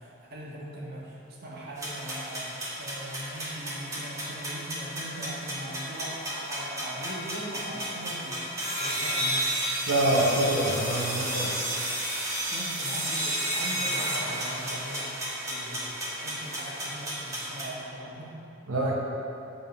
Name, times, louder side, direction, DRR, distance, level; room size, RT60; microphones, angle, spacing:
voice 1, 0.0-8.5 8.8-9.7 12.5-18.3, right 1 dB, 50° right, -5 dB, 1.4 m, -40 dB
sound 1, 1.8-17.6, right 1 dB, 15° right, 1.2 m, -32 dB
voice 2, 9.9-11.6 18.7-19.0, right 1 dB, 85° right, -3 dB, 0.8 m, -25 dB
8.1 x 3.8 x 5.3 m, 2.9 s
head